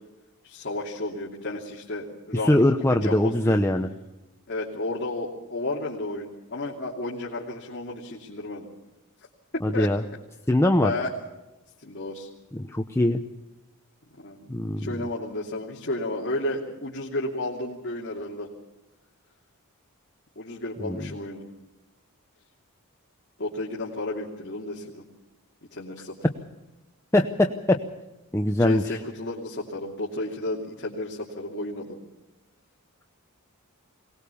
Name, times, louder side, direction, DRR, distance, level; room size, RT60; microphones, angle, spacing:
voice 1, 0.4-3.6 4.5-8.7 9.7-9.9 10.8-11.1 11.8-12.3 14.2-14.5 14.8-18.5 20.4-21.4 23.4-25.0 25.7-26.1 28.6-31.9, left 2 dB, 50° left, -4 dB, 2.9 m, -32 dB
voice 2, 2.4-3.9 9.6-10.0 10.5-10.9 12.5-13.2 14.5-14.9 20.8-21.0 27.1-27.8 28.3-29.0, left 1 dB, 10° left, 4 dB, 0.8 m, -22 dB
23.0 x 19.0 x 7.0 m, 1.0 s
head